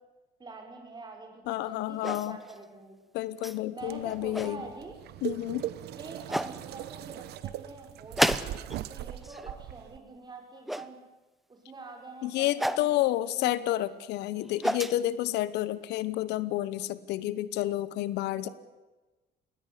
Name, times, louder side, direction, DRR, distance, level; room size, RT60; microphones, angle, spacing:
voice 1, 0.4-3.0 3.7-5.0 5.9-8.6 8.9-11.0 11.5-14.0 18.4-18.5, right 3 dB, 25° right, 3 dB, 6.2 m, -46 dB
voice 2, 1.5-2.4 3.1-4.6 5.2-5.7 12.2-18.5, left 14 dB, 85° left, 17 dB, 1.0 m, -30 dB
sound 1, 2.0-2.6 3.4-3.6 4.1-4.5 5.6-5.7 6.3-6.5 8.2-8.8 9.1-9.5 10.7-10.9 12.6-12.9 14.3-15.0, equal, ahead, 0.9 m, -30 dB
sound 2, 3.8-10.0, right 13 dB, 75° right, 1.1 m, -40 dB
20.0 x 17.0 x 10.0 m, 1.2 s
cardioid pair, 110°, 17 cm